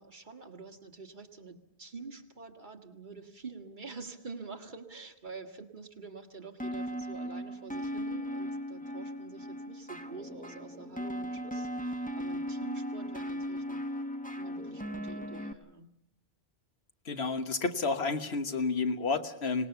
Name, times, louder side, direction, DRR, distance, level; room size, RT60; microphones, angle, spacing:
voice 1, 0.0-13.8 14.4-15.9, right 4 dB, 50° right, 5 dB, 1.8 m, -47 dB
sound 1, 6.6-15.5, equal, 10° left, 1.1 m, -37 dB
voice 2, 17.0-19.7, left 4 dB, 80° left, 8 dB, 1.5 m, -30 dB
25.5 x 19.0 x 7.0 m, 0.78 s
omnidirectional pair, 1.1 m